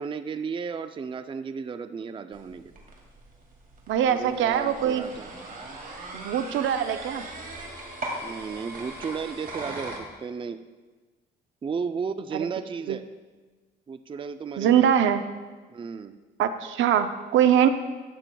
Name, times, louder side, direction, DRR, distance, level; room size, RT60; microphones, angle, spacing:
voice 1, 0.0-2.7 4.1-5.3 8.2-10.6 11.6-13.0 13.9-14.9 15.7-16.2, right 5 dB, 25° right, 10 dB, 0.4 m, -34 dB
sound 1, 2.3-10.0, right 2 dB, 45° right, 2.2 m, -39 dB
voice 2, 3.9-5.1 6.1-7.2 12.9-13.0 14.6-15.2 16.4-17.7, right 9 dB, 75° right, 10 dB, 0.6 m, -22 dB
13.0 x 8.9 x 2.3 m, 1.3 s
cardioid pair, 90°, 20 cm